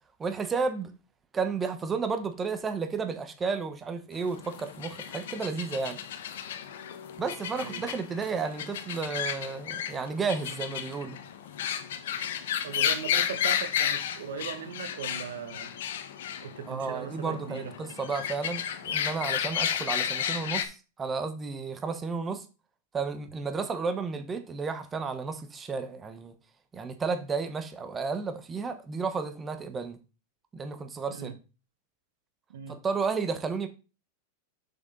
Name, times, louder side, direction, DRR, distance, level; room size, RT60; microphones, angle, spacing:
voice 1, 0.2-0.9 1.3-6.0 7.2-11.2 16.7-22.4 22.9-26.3 26.7-30.0 30.5-31.4 32.7-33.7, right 4 dB, 20° right, 1.1 m, -32 dB
sound 1, 4.2-20.6, left 9 dB, 75° left, 1.1 m, -33 dB
voice 2, 12.6-15.7 16.4-17.7 31.1-31.3 32.5-32.8, right 7 dB, 80° right, 1.2 m, -38 dB
6.9 x 6.0 x 3.9 m
hypercardioid pair, 125°, 0 cm